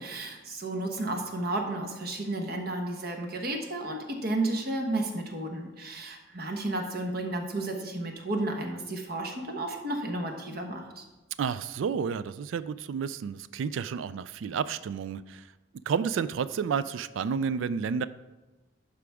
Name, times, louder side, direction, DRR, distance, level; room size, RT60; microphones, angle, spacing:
voice 1, 0.0-11.0, right 2 dB, 55° right, 3 dB, 1.2 m, -32 dB
voice 2, 11.4-15.4 15.9-18.1, right 6 dB, 90° right, 15 dB, 0.3 m, -31 dB
11.5 x 5.0 x 3.5 m, 1.1 s
head